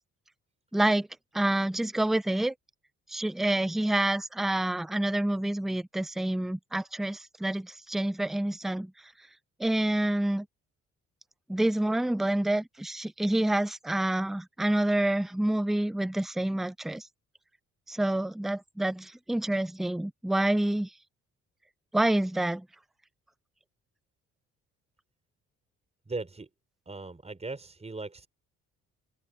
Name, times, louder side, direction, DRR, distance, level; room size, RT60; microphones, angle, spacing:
voice 1, 0.7-1.1 1.3-2.5 3.1-8.9 9.6-10.5 11.5-17.1 17.9-20.9 21.9-22.7, right 1 dB, ahead, 0.4 m, -28 dB
voice 2, 26.1-26.5 26.9-28.3, right 3 dB, 20° right, 5.7 m, -38 dB
open air
cardioid pair, 90°, 30 cm